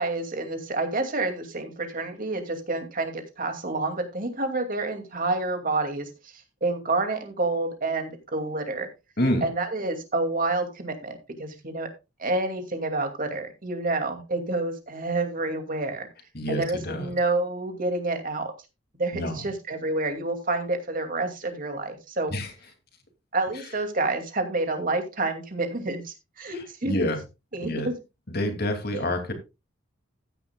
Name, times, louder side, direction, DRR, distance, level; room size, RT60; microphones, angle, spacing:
voice 1, 0.0-6.3 6.6-8.9 9.4-11.9 12.2-16.1 16.5-18.5 18.9-22.3 23.3-26.9 27.5-27.9 28.9-29.0, right 2 dB, 45° right, 6 dB, 2.5 m, -28 dB
voice 2, 9.2-9.5 16.3-17.1 19.1-19.4 22.3-22.5 26.5-27.2 27.6-27.9 28.3-29.3, left 1 dB, 55° left, 6 dB, 2.7 m, -28 dB
14.5 x 10.0 x 2.4 m, 0.26 s
head